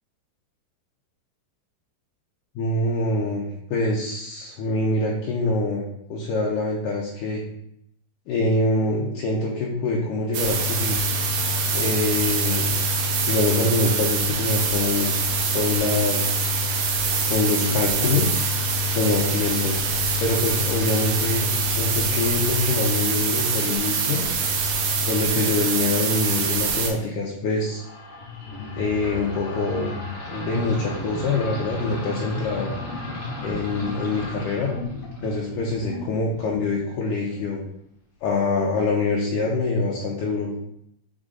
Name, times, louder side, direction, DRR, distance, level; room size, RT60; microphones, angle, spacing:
voice 1, 2.6-5.8 6.1-7.4 8.3-11.0 11.7-12.7 13.2-15.1 15.5-16.3 17.3-18.4 18.9-19.8 20.2-24.2 25.1-27.8 28.7-30.0 30.3-32.7 33.4-34.7 35.2-37.6 38.2-40.6, left 2 dB, 75° left, -3 dB, 2.1 m, -25 dB
sound 1, 10.3-26.9, right 3 dB, 75° right, 2.1 m, -24 dB
sound 2, 27.7-37.0, left 2 dB, 35° left, 1.2 m, -34 dB
6.3 x 4.5 x 3.8 m, 0.75 s
omnidirectional pair, 4.2 m